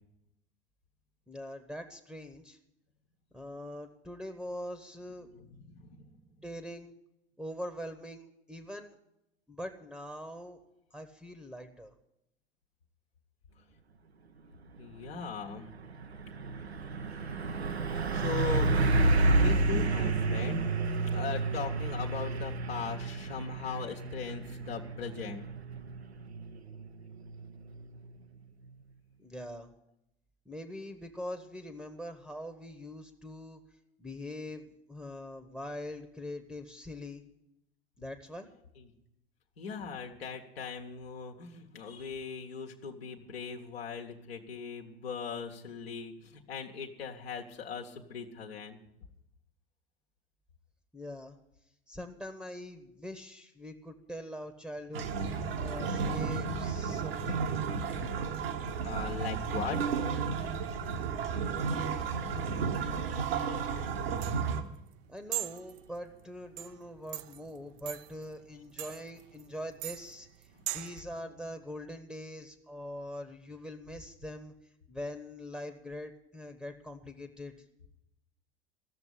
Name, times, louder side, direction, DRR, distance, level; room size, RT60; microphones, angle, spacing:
voice 1, 1.3-2.6 3.3-5.3 6.4-6.9 7.4-9.0 9.5-10.6 10.9-11.9 29.2-29.7 30.4-33.6 34.0-37.2 38.0-38.5 50.9-51.4 51.9-57.4 62.2-63.3 63.6-63.7 65.1-74.5 74.9-77.6, left 1 dB, ahead, 8 dB, 1.0 m, -43 dB
voice 2, 5.3-6.0 14.8-15.7 16.9-18.9 19.3-25.5 38.8-38.9 39.6-48.8 58.8-59.8, left 5 dB, 70° left, 1 dB, 1.3 m, -40 dB
Truck, 14.9-15.2 15.5-28.1, right 2 dB, 80° right, 0.8 m, -30 dB
sound 1, 54.9-64.6, right 5 dB, 65° right, 1.3 m, -33 dB
sound 2, 64.1-71.0, right 14 dB, 40° right, 0.5 m, -42 dB
14.5 x 7.0 x 9.9 m, 0.84 s
figure-of-eight pair, 75°, 32 cm